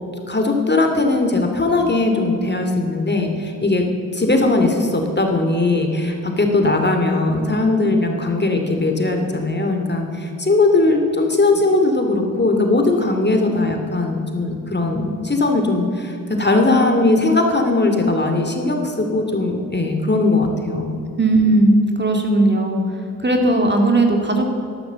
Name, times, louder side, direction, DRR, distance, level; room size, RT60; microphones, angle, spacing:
voice 1, 0.3-3.8 4.1-21.0, left 2 dB, 25° left, 4 dB, 2.6 m, -19 dB
voice 2, 21.2-22.8 23.2-24.5, right 2 dB, 25° right, 3 dB, 2.5 m, -16 dB
12.0 x 12.0 x 7.0 m, 2.6 s
supercardioid pair, 40°, 39 cm